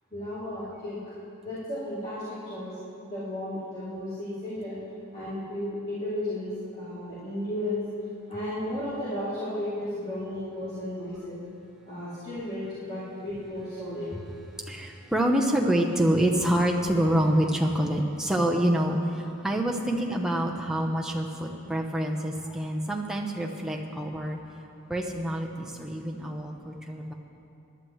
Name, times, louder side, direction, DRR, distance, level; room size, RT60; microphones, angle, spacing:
voice 1, 0.1-1.0 1.4-2.8 3.1-4.8 5.1-7.8 8.3-11.4 11.9-14.1, left 1 dB, 25° left, -12 dB, 3.0 m, -34 dB
voice 2, 14.7-24.4 24.9-27.1, right 1 dB, 5° right, -1 dB, 0.8 m, -26 dB
20.5 x 11.5 x 3.2 m, 2.7 s
head